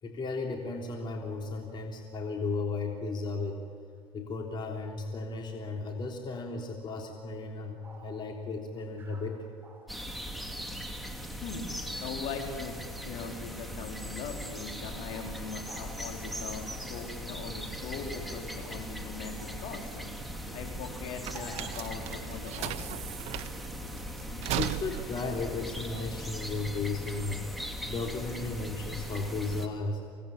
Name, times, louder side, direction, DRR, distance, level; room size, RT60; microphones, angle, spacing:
voice 1, 0.0-3.6 4.1-9.4 24.5-27.5 27.9-30.0, left 3 dB, 40° left, 1 dB, 3.4 m, -35 dB
sound 1, 7.8-10.5 11.4-11.5 11.8-12.3 13.1-13.4 14.0-14.1 14.4-14.8 15.1-16.5 17.5-17.6 18.0-22.2 22.5-22.8 23.1-23.3 24.3-25.2, right 2 dB, 15° right, 6.3 m, -55 dB
sound 2, 9.9-29.7, equal, ahead, 2.9 m, -39 dB
voice 2, 11.4-12.8 13.0-20.1 20.5-23.1, left 5 dB, 65° left, 2 dB, 4.7 m, -40 dB
sound 3, 20.0-26.8, right 13 dB, 60° right, 1.0 m, -38 dB
25.0 x 18.5 x 8.9 m, 2.3 s
supercardioid pair, 90°, 12 cm